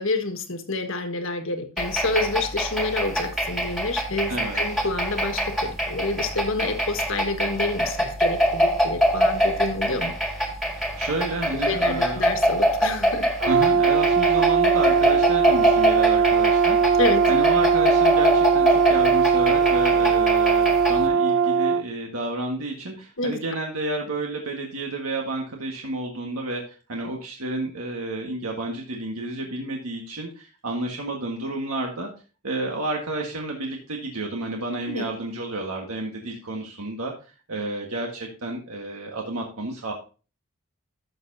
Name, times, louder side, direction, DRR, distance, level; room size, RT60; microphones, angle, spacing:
voice 1, 0.0-10.4 11.7-13.3 17.0-17.2 23.2-23.4 34.9-35.1, left 2 dB, 65° left, 6 dB, 1.5 m, -28 dB
sound 1, 1.8-21.1, equal, ahead, 1.8 m, -25 dB
voice 2, 4.3-4.6 10.7-12.2 13.4-17.0 17.3-32.1 32.4-37.1 37.5-39.9, right 2 dB, 85° right, 1 dB, 1.6 m, -31 dB
Brass instrument, 13.4-21.8, right 6 dB, 60° right, 0.7 m, -19 dB
12.5 x 6.8 x 2.7 m, 0.34 s
head